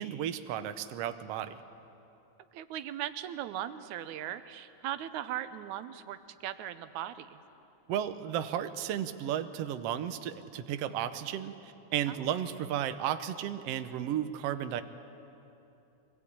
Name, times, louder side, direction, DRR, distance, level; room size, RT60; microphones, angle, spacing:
voice 1, 0.0-1.6 7.9-14.8, right 10 dB, 70° right, 10 dB, 1.7 m, -34 dB
voice 2, 2.5-7.4 12.1-12.3, right 11 dB, 90° right, 12 dB, 2.2 m, -38 dB
23.5 x 19.5 x 8.6 m, 2.8 s
omnidirectional pair, 3.3 m